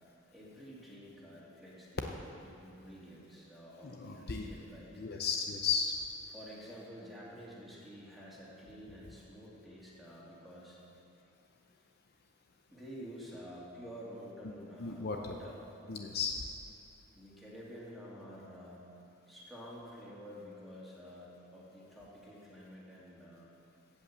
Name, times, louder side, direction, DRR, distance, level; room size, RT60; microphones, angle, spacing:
voice 1, 0.3-5.1 6.3-10.8 12.7-15.6 17.1-18.9 19.3-23.5, equal, ahead, -7 dB, 2.6 m, -50 dB
voice 2, 3.9-4.5 5.0-5.9 14.8-15.3 15.9-16.3, left 6 dB, 50° left, 3 dB, 0.7 m, -34 dB
16.0 x 5.6 x 7.4 m, 2.7 s
head